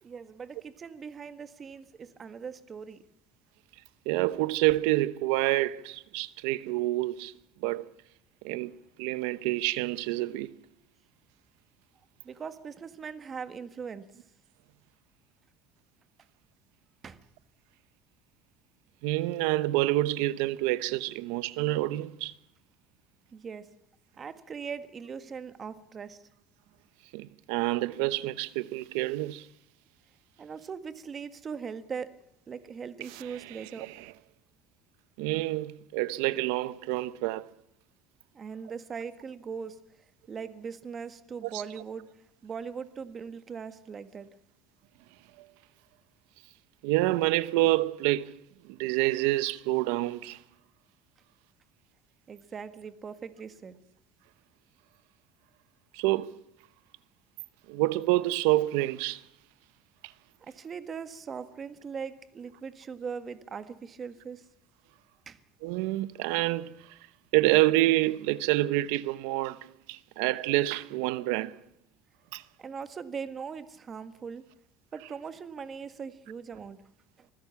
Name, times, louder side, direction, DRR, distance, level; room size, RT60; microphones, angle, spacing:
voice 1, 0.0-3.0 12.2-14.1 17.0-17.2 23.3-23.7 24.2-26.2 30.4-32.1 32.5-33.9 38.3-39.8 40.3-42.0 42.4-44.3 52.3-53.8 60.4-64.4 65.3-65.4 72.6-74.4 74.9-76.8, right 6 dB, 35° right, 1.6 m, -40 dB
voice 2, 4.1-7.3 7.6-7.9 8.4-8.7 9.0-10.5 19.0-22.3 27.1-29.5 33.0-34.1 35.2-37.5 41.4-41.7 46.8-48.4 48.6-50.4 55.9-56.3 57.7-59.2 65.6-67.0 67.3-71.6 72.3-72.4 75.0-75.1, right 17 dB, 90° right, 0.8 m, -28 dB
25.5 x 15.5 x 7.2 m
cardioid pair, 115°, 0 cm